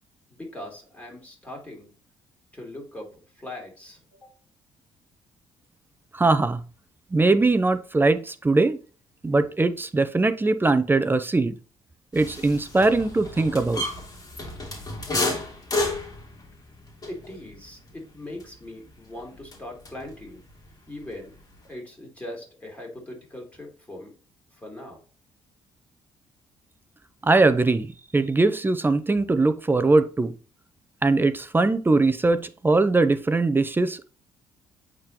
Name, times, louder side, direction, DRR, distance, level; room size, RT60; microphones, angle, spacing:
voice 1, 0.3-1.9 2.5-3.1 3.3-4.4 17.1-20.4 20.9-21.3 21.6-24.1 24.5-25.0, left 1 dB, 15° left, -1 dB, 3.4 m, -40 dB
voice 2, 6.1-6.6 7.1-8.8 9.2-11.6 12.1-13.8 27.2-27.9 28.1-30.3 31.0-34.0, right 3 dB, 20° right, 12 dB, 0.6 m, -21 dB
sound 1, 12.1-20.3 20.6-21.7, left 2 dB, 35° left, 2.4 m, -33 dB
8.5 x 3.7 x 3.0 m, 0.36 s
supercardioid pair, 70°, 11 cm